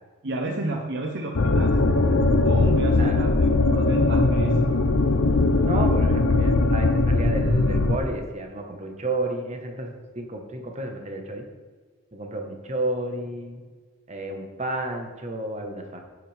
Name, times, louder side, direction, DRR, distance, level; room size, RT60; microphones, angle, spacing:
voice 1, 0.2-1.8 2.4-4.6, right 2 dB, 50° right, 2 dB, 0.8 m, -31 dB
sound 1, 1.4-8.0, left 2 dB, 70° left, 0.8 m, -20 dB
voice 2, 5.7-11.4 12.1-13.6 14.1-16.1, right 2 dB, 30° right, 3 dB, 1.3 m, -31 dB
10.5 x 9.3 x 3.5 m, 1.5 s
head